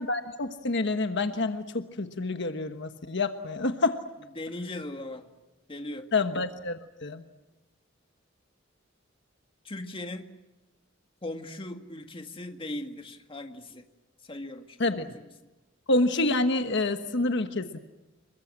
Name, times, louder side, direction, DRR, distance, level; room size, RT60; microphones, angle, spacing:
voice 1, 0.0-4.0 6.1-7.2 14.8-15.1 15.9-17.8, left 2 dB, 65° left, 8 dB, 1.3 m, -28 dB
voice 2, 4.4-5.3 5.7-6.1 9.6-10.3 11.2-13.9 14.2-15.1, left 1 dB, 25° left, 5 dB, 2.0 m, -38 dB
28.0 x 23.5 x 7.5 m, 1.1 s
head